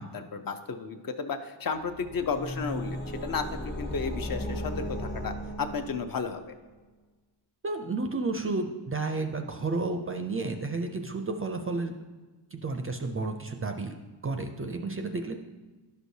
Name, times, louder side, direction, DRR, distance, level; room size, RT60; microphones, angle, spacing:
voice 1, 0.0-6.4, left 5 dB, 50° left, 7 dB, 0.6 m, -33 dB
sound 1, 1.7-6.4, equal, 25° left, 1.0 m, -36 dB
voice 2, 7.6-12.0 12.5-13.9 14.2-15.3, right 3 dB, 30° right, 5 dB, 0.4 m, -31 dB
11.5 x 6.2 x 2.7 m, 1.3 s
wide cardioid pair, 150°, 46 cm